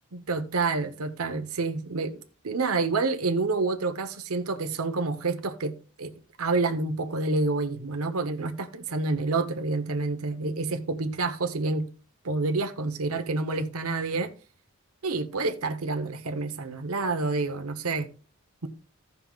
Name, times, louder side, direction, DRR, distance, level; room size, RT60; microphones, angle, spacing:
voice 1, 0.1-6.1 6.4-11.9 12.2-14.3 15.0-18.1, right 3 dB, 90° right, 0.9 m, -28 dB
16.0 x 5.5 x 2.4 m
head